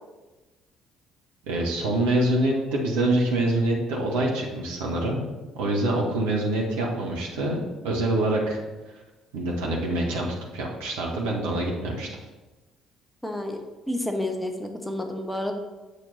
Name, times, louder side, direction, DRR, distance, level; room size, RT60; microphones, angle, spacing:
voice 1, 1.4-5.2 5.5-8.6 9.3-10.3 10.5-12.1, right 1 dB, 70° right, -2 dB, 1.4 m, -25 dB
voice 2, 13.2-13.6 13.9-15.5, left 1 dB, 5° left, 3 dB, 1.2 m, -30 dB
8.5 x 6.5 x 4.2 m, 1.2 s
figure-of-eight pair, 50°, 0 cm